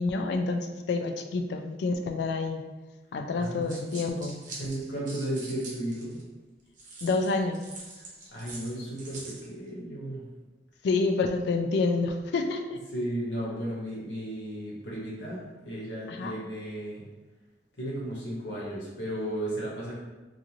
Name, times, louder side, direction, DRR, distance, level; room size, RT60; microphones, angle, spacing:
voice 1, 0.0-2.6 3.1-4.4 7.0-7.6 10.8-12.8 16.1-16.3, left 3 dB, 65° left, 5 dB, 0.3 m, -28 dB
voice 2, 3.3-3.9 4.5-6.2 8.0-8.1 8.3-10.3 12.9-17.0 17.8-19.9, right 1 dB, 80° left, -6 dB, 1.0 m, -34 dB
sound 1, 3.4-6.2 6.8-9.5, right 2 dB, 45° right, 0.6 m, -44 dB
2.5 x 2.5 x 2.9 m, 1.2 s
head